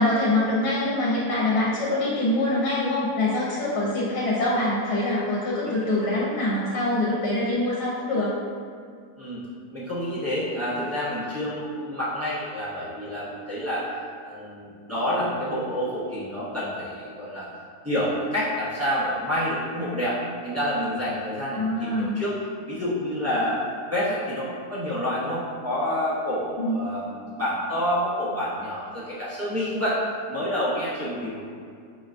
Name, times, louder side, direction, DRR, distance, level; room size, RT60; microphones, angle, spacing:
voice 1, 0.0-8.3 21.5-22.2 26.6-26.8 31.2-31.3, left 1 dB, 75° left, -7 dB, 1.3 m, -24 dB
voice 2, 9.7-13.9 14.2-17.5 17.8-20.2 20.4-22.3 22.7-23.6 23.9-30.0 30.3-31.4, equal, 20° right, -10 dB, 0.4 m, -28 dB
6.1 x 2.3 x 2.5 m, 2.2 s
omnidirectional pair, 1.8 m